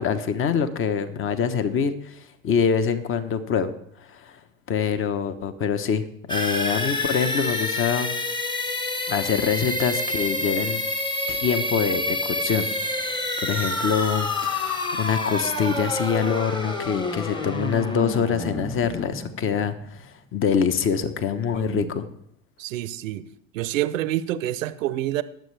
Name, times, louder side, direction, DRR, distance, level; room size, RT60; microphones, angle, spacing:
voice 1, 0.0-3.7 4.0-4.4 4.7-8.1 9.1-10.8 11.3-22.0, left 7 dB, 30° left, 11 dB, 1.1 m, -25 dB
sound 1, 6.3-20.0, left 2 dB, 10° left, 1.2 m, -28 dB
voice 2, 21.5-21.9 22.6-23.2 23.5-25.2, right 14 dB, 75° right, 16 dB, 0.8 m, -27 dB
20.0 x 7.5 x 3.4 m, 0.70 s
hypercardioid pair, 100°, 39 cm